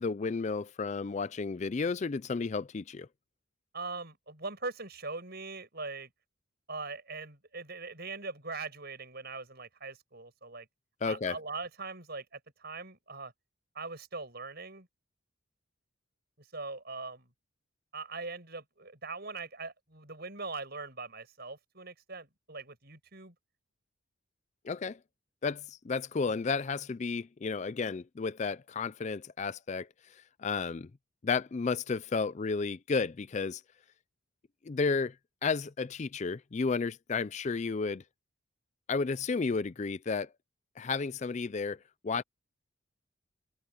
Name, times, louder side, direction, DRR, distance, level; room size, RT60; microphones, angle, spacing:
voice 1, 0.0-3.1 11.0-11.4 24.6-25.0 25.4-30.9 31.2-33.6 34.6-35.2 35.4-38.0 38.9-40.3 40.8-41.8 42.0-42.2, left 4 dB, 35° left, 0.4 m, -32 dB
voice 2, 3.7-6.1 6.7-10.7 11.1-13.3 13.7-14.9 16.4-17.3 17.9-23.3, right 3 dB, 50° right, 7.5 m, -41 dB
open air
head